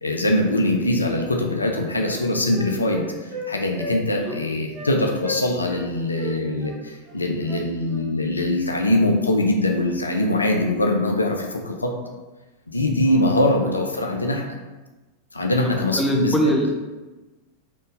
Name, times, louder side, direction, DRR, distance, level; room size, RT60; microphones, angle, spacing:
voice 1, 0.0-11.9 12.7-14.4 15.3-16.3, left 1 dB, 80° left, 2 dB, 0.3 m, -22 dB
Wind instrument woodwind instrument, 2.1-3.5 3.8-4.0 4.2-4.4 4.7-4.9 5.2-5.9 6.2-8.1, left 1 dB, 10° right, 1.1 m, -35 dB
voice 2, 15.6-16.8, equal, 10° left, 1 dB, 0.5 m, -24 dB
3.6 x 2.5 x 2.5 m, 1.2 s
figure-of-eight pair, 90°, 0 cm